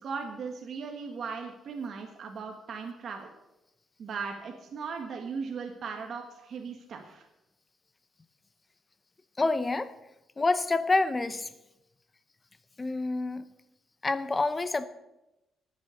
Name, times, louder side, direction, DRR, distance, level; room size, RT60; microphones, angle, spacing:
voice 1, 0.0-3.3 4.0-7.2, right 5 dB, 50° right, 3 dB, 1.6 m, -38 dB
voice 2, 9.4-9.9 10.4-11.5 12.8-13.4 14.0-14.9, left 3 dB, 20° left, 12 dB, 0.8 m, -27 dB
13.5 x 9.6 x 7.1 m, 0.95 s
cardioid pair, 145°, 0 cm